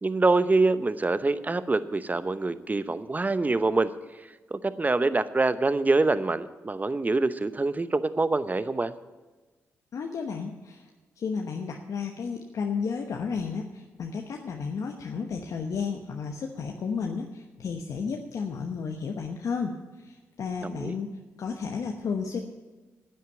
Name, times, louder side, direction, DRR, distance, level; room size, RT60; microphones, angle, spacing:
voice 1, 0.0-8.9 20.6-20.9, right 3 dB, 30° right, 13 dB, 0.9 m, -25 dB
voice 2, 9.9-10.8 11.2-22.4, left 5 dB, 70° left, 2 dB, 1.0 m, -33 dB
10.0 x 8.3 x 9.0 m, 1.2 s
supercardioid pair, 45°, 6 cm